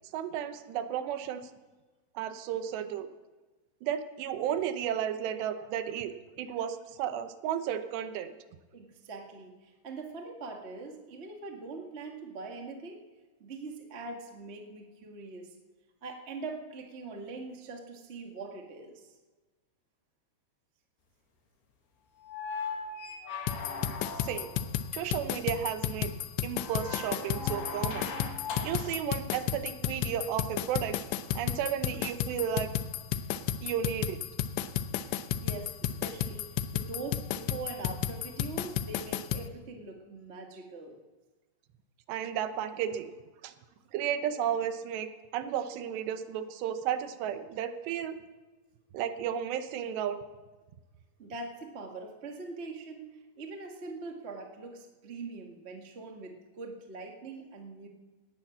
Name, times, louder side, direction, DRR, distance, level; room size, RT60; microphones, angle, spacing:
voice 1, 0.1-1.5 2.2-3.1 3.8-8.3 24.2-24.5 24.9-26.1 26.4-28.1 28.6-31.0 31.3-32.7 33.6-34.2 42.1-43.1 43.4-43.5 43.9-48.2 48.9-50.2, right 9 dB, 85° right, 9 dB, 3.1 m, -33 dB
voice 2, 8.7-13.0 13.4-15.5 16.0-19.1 35.0-41.0 51.2-57.9, right 3 dB, 50° right, 2 dB, 0.7 m, -42 dB
sound 1, 22.2-24.7 26.5-29.0 30.7-30.8, left 4 dB, 70° left, 4.1 m, -39 dB
sound 2, 23.5-39.5, left 10 dB, 85° left, 3.0 m, -33 dB
18.5 x 10.5 x 7.4 m, 1.2 s
omnidirectional pair, 4.9 m